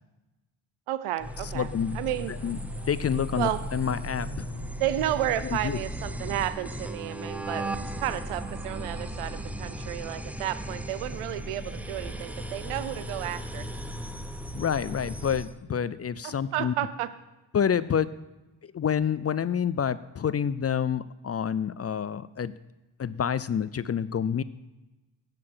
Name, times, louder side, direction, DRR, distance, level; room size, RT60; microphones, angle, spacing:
voice 1, 0.9-1.7 1.9-2.3 3.3-3.6 4.8-7.7 8.0-13.7 16.2-17.1, right 13 dB, 90° right, 14 dB, 0.7 m, -32 dB
sound 1, 1.2-15.5, equal, 5° right, 0.8 m, -36 dB
voice 2, 1.5-2.0 2.3-2.6 2.9-4.5 5.4-5.8 14.5-16.7 17.5-18.1 18.6-22.6 23.0-24.4, left 8 dB, 30° left, 17 dB, 0.4 m, -28 dB
sound 2, 2.7-14.5, right 2 dB, 45° right, 1.7 m, -49 dB
7.8 x 5.8 x 7.8 m, 1.1 s
supercardioid pair, 40°, 49 cm